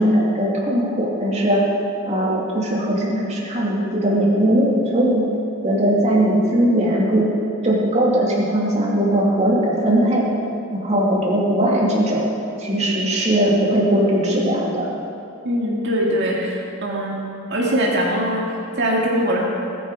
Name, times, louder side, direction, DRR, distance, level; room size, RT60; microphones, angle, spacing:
voice 1, 0.0-1.6 2.1-5.2 5.6-7.3 7.6-10.3 10.7-12.3 12.6-14.8, right 1 dB, 35° right, -4 dB, 2.7 m, -19 dB
voice 2, 15.4-17.2 17.5-19.4, equal, 60° right, -3 dB, 2.2 m, -22 dB
21.0 x 10.0 x 4.9 m, 2.6 s
head